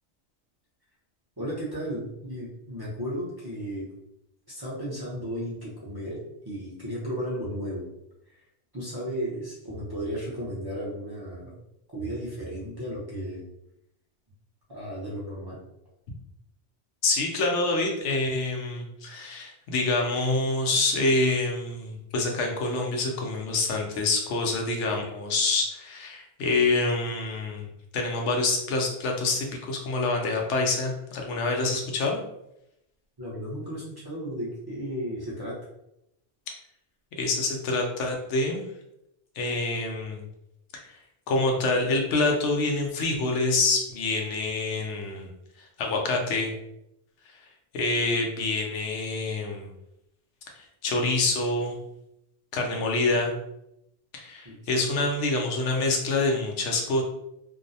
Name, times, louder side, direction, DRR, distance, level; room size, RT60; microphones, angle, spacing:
voice 1, 1.4-3.9 4.5-6.2 6.4-7.9 8.3-8.4 8.7-11.5 11.9-13.4 14.7-15.6 33.2-35.6 54.4-54.5, equal, 30° right, -7 dB, 0.5 m, -34 dB
voice 2, 17.0-32.2 37.2-38.6 39.4-40.2 40.7-40.9 41.3-45.3 45.8-46.5 47.7-49.7 50.6-51.8 52.5-53.3 54.1-57.0, left 3 dB, 90° left, 1 dB, 0.9 m, -26 dB
2.5 x 2.0 x 2.6 m, 0.84 s
omnidirectional pair, 1.2 m